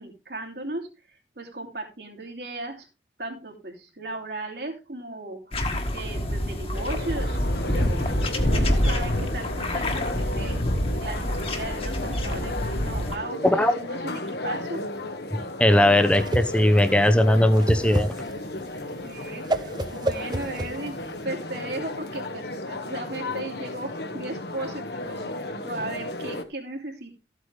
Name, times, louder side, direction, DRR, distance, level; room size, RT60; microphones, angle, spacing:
voice 1, 0.0-2.9 3.2-5.7 5.9-7.4 7.7-10.6 11.0-14.8 15.9-16.0 19.0-21.0 21.2-27.1, right 2 dB, 70° right, 1 dB, 2.9 m, -36 dB
sound 1, 5.5-13.2, left 1 dB, 35° left, 1.6 m, -26 dB
sound 2, 6.7-26.4, left 2 dB, 70° left, 1.5 m, -34 dB
voice 2, 13.4-13.7 15.6-18.1, left 1 dB, 5° left, 9 dB, 0.8 m, -19 dB
Whoosh swoosh swish, 15.7-21.2, right 1 dB, 25° right, 0.6 m, -30 dB
14.0 x 8.1 x 3.4 m, 0.28 s
head